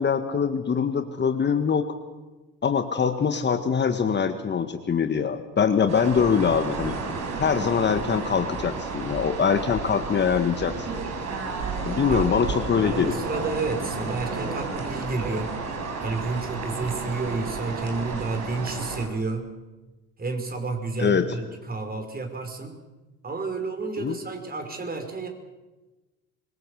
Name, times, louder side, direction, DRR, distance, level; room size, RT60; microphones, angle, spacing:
voice 1, 0.0-1.8 2.6-6.9 7.4-10.9 11.8-13.1 21.0-21.2 24.0-24.2, left 6 dB, 30° left, 7 dB, 1.9 m, -23 dB
sound 1, 5.9-19.1, right 4 dB, 45° right, 6.2 m, -32 dB
voice 2, 12.8-15.5 16.0-19.5 20.2-22.8 23.2-25.3, right 3 dB, 25° right, 6 dB, 5.3 m, -30 dB
25.0 x 22.0 x 6.6 m, 1.1 s
hypercardioid pair, 70°, 36 cm